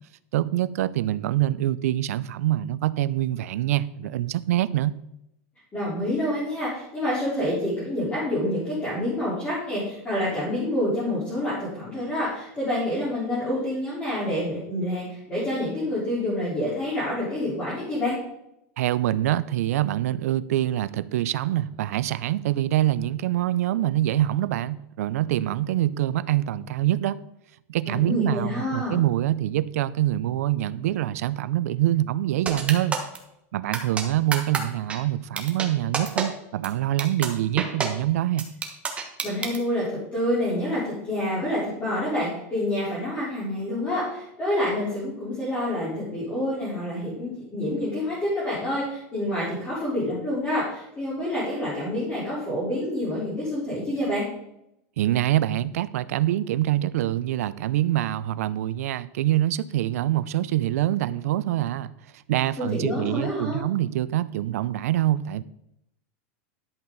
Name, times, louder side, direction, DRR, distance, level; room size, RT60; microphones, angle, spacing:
voice 1, 0.3-5.0 18.8-27.2 27.7-33.0 33.5-38.5 55.0-65.4, right 13 dB, 85° right, 18 dB, 0.5 m, -25 dB
voice 2, 5.7-18.2 27.9-29.0 39.2-54.2 62.6-63.6, left 1 dB, 15° left, -9 dB, 3.9 m, -27 dB
sound 1, 32.5-33.2 33.7-34.0 34.3-34.6 34.9-35.0 35.4-35.7 35.9-36.2 36.6-36.7 37.0-37.3 37.6-37.9 38.4-39.6, right 6 dB, 15° right, 1.2 m, -27 dB
11.0 x 7.6 x 4.0 m, 0.81 s
supercardioid pair, 160°, 8 cm